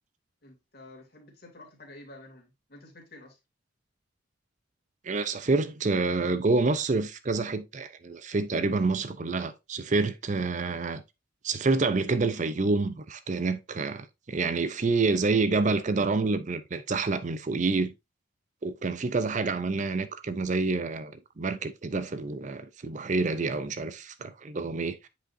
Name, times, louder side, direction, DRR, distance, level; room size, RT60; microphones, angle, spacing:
voice 1, 0.4-3.4, left 2 dB, 50° left, 2.5 m, -50 dB
voice 2, 5.0-11.0 11.4-17.9 18.6-25.1, right 3 dB, 40° right, 0.5 m, -28 dB
8.9 x 5.1 x 2.6 m
head